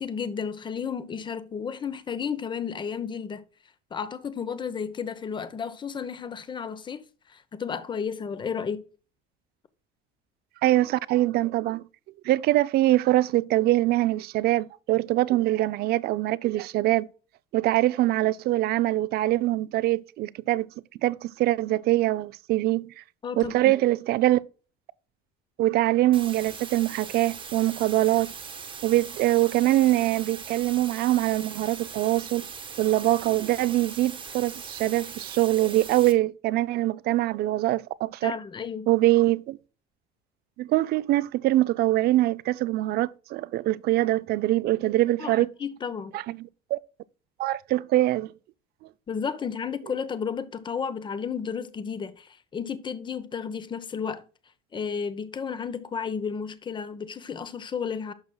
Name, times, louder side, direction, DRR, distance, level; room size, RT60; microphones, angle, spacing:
voice 1, 0.0-3.4 3.9-7.0 7.3-8.8 23.2-23.7 38.2-38.9 45.2-45.3 45.6-46.2 49.1-54.2 54.7-58.1, left 6 dB, 25° left, 0.8 m, -32 dB
voice 2, 10.6-11.8 12.2-17.1 17.5-20.7 21.0-23.0 23.4-24.4 25.6-28.3 28.8-32.4 32.8-38.3 38.9-39.6 40.6-45.5 46.1-46.8 47.4-48.3, right 16 dB, 55° right, 0.5 m, -23 dB
sound 1, 26.1-36.1, right 6 dB, 25° right, 1.2 m, -40 dB
11.0 x 6.1 x 2.3 m
cardioid pair, 130°, 20 cm